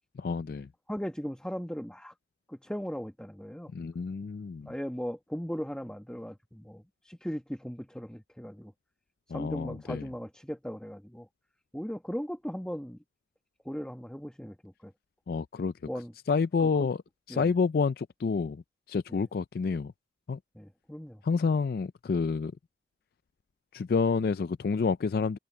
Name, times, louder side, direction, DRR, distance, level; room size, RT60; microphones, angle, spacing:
voice 1, 0.2-0.7 3.7-4.7 9.3-10.1 15.3-15.7 16.3-17.0 17.3-19.9 20.3-20.4 21.2-22.5 23.7-25.4, left 5 dB, 55° left, 0.3 m, -29 dB
voice 2, 0.9-2.1 2.5-3.7 4.6-8.7 9.3-11.3 11.7-13.0 13.6-14.9 15.9-16.1 16.6-16.9 17.3-17.5 19.1-19.2 20.5-21.2, equal, 5° left, 1.1 m, -38 dB
head